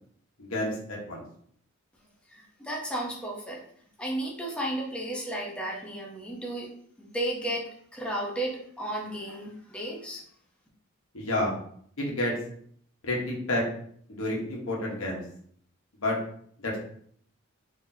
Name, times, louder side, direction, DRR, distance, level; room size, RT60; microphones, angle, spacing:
voice 1, 0.4-1.2 11.1-11.5 12.0-12.3 13.0-13.6 14.1-15.2 16.0-16.2 16.6-16.7, left 1 dB, 75° left, -2 dB, 1.2 m, -29 dB
voice 2, 2.3-3.6 4.0-6.7 7.0-10.2, right 1 dB, 5° left, -2 dB, 0.7 m, -33 dB
4.0 x 3.4 x 2.7 m, 0.62 s
head